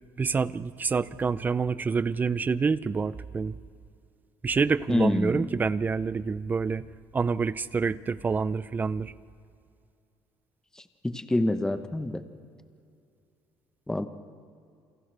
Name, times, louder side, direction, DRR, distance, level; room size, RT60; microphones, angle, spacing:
voice 1, 0.2-3.6 4.4-6.8 7.1-9.1, right 5 dB, 20° right, 17 dB, 0.4 m, -27 dB
voice 2, 4.9-5.5 11.0-12.2 13.9-14.1, left 1 dB, 5° left, 8 dB, 1.0 m, -26 dB
29.0 x 28.5 x 3.4 m, 2.4 s
cardioid pair, 140°, 8 cm